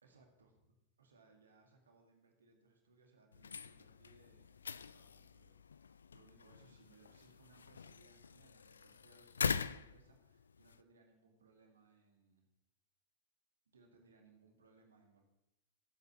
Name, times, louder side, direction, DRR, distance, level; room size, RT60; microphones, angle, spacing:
voice 1, 0.0-5.7 6.1-12.5 13.7-15.2, right 3 dB, 70° right, 3 dB, 1.9 m, -67 dB
sound 1, 3.3-10.8, left 6 dB, 70° left, 0.3 m, -43 dB
22.5 x 8.2 x 3.0 m, 0.90 s
figure-of-eight pair, 90°, 0 cm